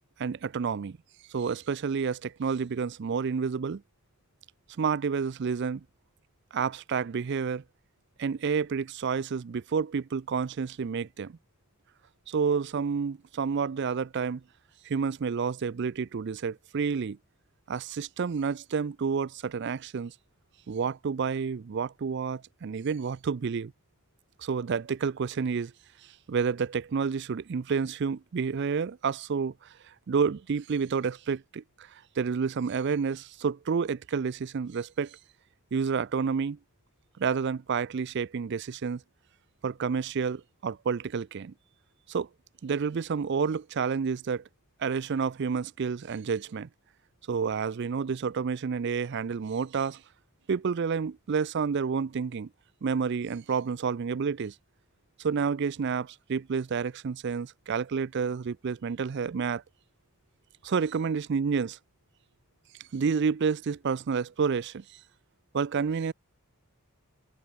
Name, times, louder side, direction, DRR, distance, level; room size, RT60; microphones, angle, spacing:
voice 1, 0.2-1.0 1.3-3.8 4.8-5.8 6.5-7.6 8.2-11.4 12.3-14.4 14.8-17.2 17.7-20.1 20.7-23.7 24.4-25.7 26.3-29.5 30.1-31.9 32.2-35.2 35.7-36.6 37.2-39.0 39.6-41.5 42.1-42.3 42.6-44.4 44.8-46.7 47.3-50.0 50.5-52.5 52.8-54.5 55.2-59.6 60.6-61.8 62.9-64.8 65.5-66.1, right 5 dB, 50° right, 0.4 m, -29 dB
head